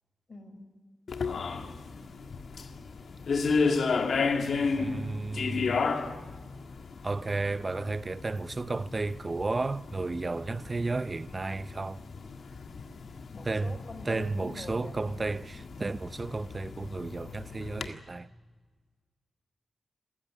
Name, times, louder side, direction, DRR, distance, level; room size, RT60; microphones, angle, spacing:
voice 1, 0.3-0.7 13.3-15.1, left 2 dB, 45° left, 6.0 m, -44 dB
sound 1, 1.1-17.9, left 4 dB, 70° left, 1.7 m, -33 dB
voice 2, 4.8-5.9 7.0-12.0 13.4-13.8 14.1-18.3, right 3 dB, 35° right, 0.6 m, -33 dB
27.5 x 15.0 x 9.8 m
cardioid pair, 70°, 0 cm